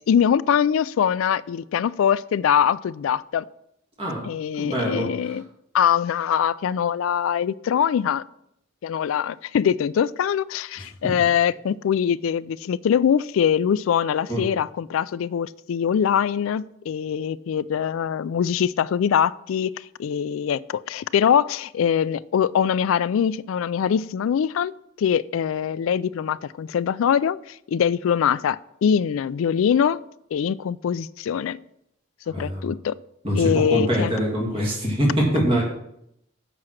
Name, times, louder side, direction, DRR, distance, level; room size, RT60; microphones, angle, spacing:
voice 1, 0.1-3.4 4.2-5.4 5.7-8.2 8.8-19.7 20.0-24.7 25.0-30.0 30.3-31.6 32.3-32.9 33.3-34.1, left 8 dB, 75° left, 0.3 m, -23 dB
voice 2, 4.0-4.3 4.6-5.4 10.8-10.9 14.3-14.4 32.3-32.7 33.2-35.6, equal, 25° right, 2.0 m, -24 dB
7.6 x 5.9 x 6.4 m
head